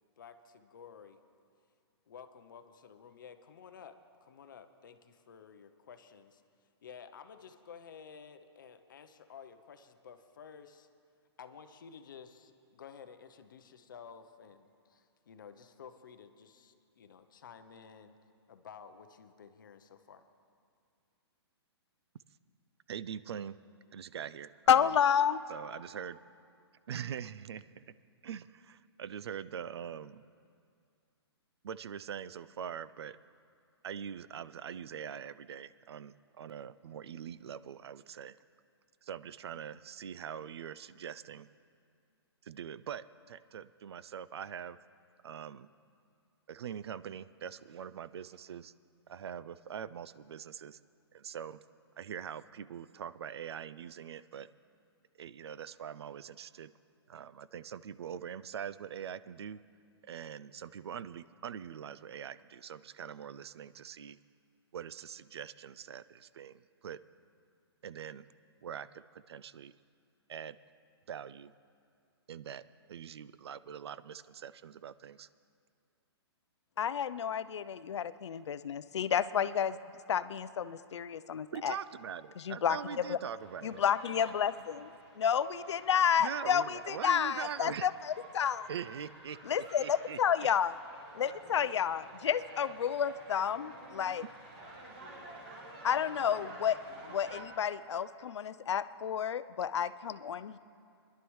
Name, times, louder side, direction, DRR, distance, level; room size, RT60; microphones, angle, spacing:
voice 1, 0.2-1.2 2.1-6.4 6.8-10.9 11.4-18.2 18.5-20.2, left 7 dB, 45° left, 9 dB, 0.6 m, -53 dB
voice 2, 22.9-23.6 23.9-24.9 25.5-26.2 26.9-27.9 28.2-30.2 31.6-33.2 33.8-38.4 39.0-41.5 42.4-44.8 45.2-45.7 46.5-48.7 49.1-50.8 51.1-51.6 52.0-54.5 55.2-56.7 57.1-59.6 60.0-64.2 64.7-67.0 67.8-68.3 68.6-69.7 70.3-70.6 71.1-71.5 72.3-72.6 72.9-75.3 81.5-83.8 86.2-87.9 88.7-90.2, right 8 dB, 70° right, 17 dB, 0.4 m, -43 dB
voice 3, 24.7-25.4 76.8-79.8 80.1-81.8 82.4-83.2 83.6-88.7 89.4-90.7 91.1-94.2 95.8-96.8 97.1-100.6, left 8 dB, 85° left, 14 dB, 0.5 m, -30 dB
sound 1, 83.4-97.4, right 2 dB, 25° right, 1.4 m, -51 dB
21.5 x 11.5 x 3.1 m, 2.3 s
hypercardioid pair, 175°, 14 cm